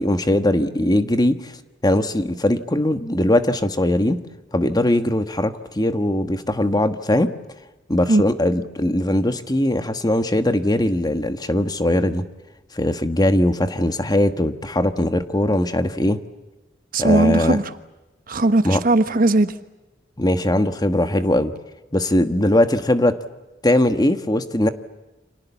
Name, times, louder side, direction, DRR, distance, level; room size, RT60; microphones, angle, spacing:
voice 1, 0.0-1.6 1.8-4.2 4.5-7.3 7.9-12.3 12.7-16.2 17.0-17.6 18.6-18.8 20.2-21.5 21.9-23.2 23.6-24.7, left 1 dB, 20° left, 9 dB, 1.4 m, -20 dB
voice 2, 16.9-17.7 18.3-19.5, right 2 dB, 50° right, 11 dB, 1.2 m, -18 dB
30.0 x 26.5 x 7.2 m, 1.0 s
head